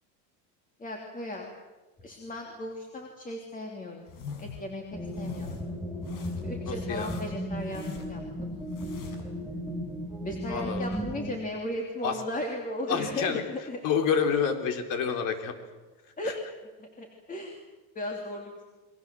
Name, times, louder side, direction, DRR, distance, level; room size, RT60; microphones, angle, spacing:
voice 1, 0.8-1.5 2.0-4.1 4.4-5.6 6.4-8.5 10.2-13.8 16.2-16.4 16.8-17.6 17.9-18.6, left 1 dB, 20° left, 2 dB, 3.1 m, -36 dB
sound 1, 4.1-4.7 5.0-5.6 6.0-6.6 6.9-8.2 8.6-9.3, left 5 dB, 60° left, 6.4 m, -44 dB
sound 2, 4.9-11.3, equal, ahead, 6.0 m, -35 dB
voice 2, 6.7-7.2 10.5-11.0 12.0-12.1 12.9-13.4 13.8-15.5, left 7 dB, 45° left, 6 dB, 4.1 m, -28 dB
29.0 x 23.5 x 7.8 m, 1.2 s
supercardioid pair, 145°, 44 cm